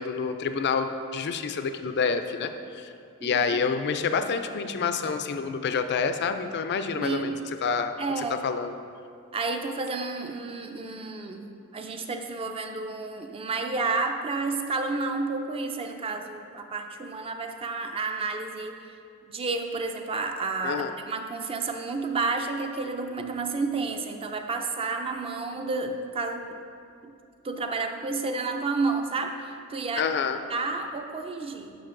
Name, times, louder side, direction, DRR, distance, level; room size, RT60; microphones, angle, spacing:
voice 1, 0.0-2.9 3.2-7.9 8.4-8.7 20.6-20.9 30.0-30.4, left 5 dB, 50° left, 8 dB, 0.4 m, -28 dB
voice 2, 6.9-7.5 8.0-8.5 9.3-18.8 19.3-26.6 27.4-30.1 30.5-31.8, right 3 dB, 25° right, 5 dB, 0.4 m, -31 dB
9.9 x 5.9 x 2.5 m, 2.4 s
head